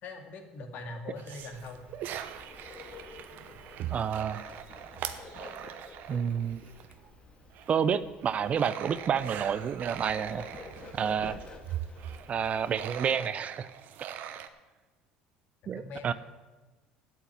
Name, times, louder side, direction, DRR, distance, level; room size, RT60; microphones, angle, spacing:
voice 1, 0.0-1.9 15.6-16.1, left 2 dB, 60° left, 4 dB, 2.2 m, -42 dB
sound 1, 1.2-7.1 7.5-14.5, right 10 dB, 60° right, 0.9 m, -41 dB
Bird, 1.4-13.0, left 4 dB, 35° left, 2.0 m, -50 dB
voice 2, 3.9-4.4 6.1-6.6 7.7-10.5 10.9-11.4 12.3-13.7 15.7-16.1, right 7 dB, 40° right, 15 dB, 0.6 m, -29 dB
8.4 x 8.2 x 9.2 m, 1.2 s
supercardioid pair, 85°, 3 cm